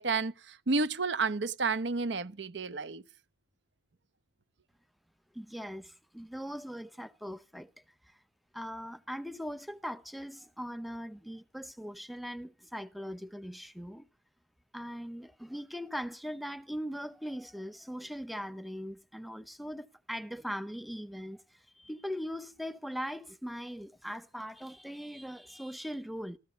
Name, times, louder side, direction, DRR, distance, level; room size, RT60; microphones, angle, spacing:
voice 1, 0.0-3.0, right 4 dB, 70° right, 0.9 m, -31 dB
voice 2, 5.3-7.7 8.0-8.2 8.5-14.1 14.7-26.4, equal, ahead, 0.8 m, -40 dB
15.0 x 13.5 x 5.6 m
head